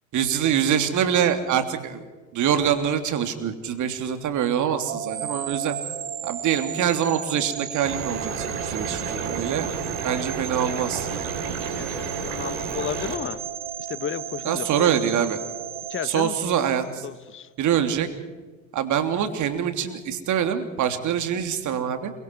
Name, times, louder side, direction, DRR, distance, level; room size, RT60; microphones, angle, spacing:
voice 1, 0.1-2.0 2.3-5.8 6.2-9.7 10.0-11.1 11.8-11.9 14.4-15.4 16.0-17.1 17.6-18.1 18.7-22.1, right 9 dB, 45° right, 7 dB, 3.1 m, -24 dB
sound 1, 4.9-17.0, right 9 dB, 85° right, 1.1 m, -34 dB
sound 2, 7.8-13.2, right 5 dB, 65° right, 5.0 m, -32 dB
voice 2, 11.7-13.4 13.9-14.9 15.9-16.4 17.0-17.5, left 9 dB, 30° left, 15 dB, 1.2 m, -33 dB
29.0 x 23.5 x 4.7 m, 1.3 s
hypercardioid pair, 70°, 40 cm